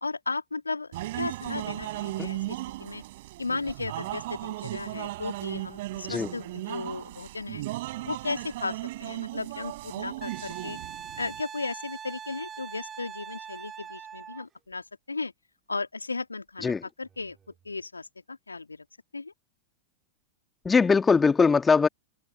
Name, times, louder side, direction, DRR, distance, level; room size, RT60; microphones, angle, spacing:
voice 1, 0.0-3.0 3.4-7.6 8.0-10.8 11.2-15.3 15.7-17.4 17.6-18.8 19.1-19.3, left 3 dB, 80° left, 2.9 m, -35 dB
sound 1, 0.9-11.4, right 18 dB, 55° right, 4.3 m, -36 dB
Wind instrument woodwind instrument, 10.2-14.4 17.1-17.3, right 7 dB, 20° right, 4.4 m, -42 dB
voice 2, 20.6-21.9, left 5 dB, 15° left, 2.4 m, -21 dB
open air
figure-of-eight pair, 90°, 0 cm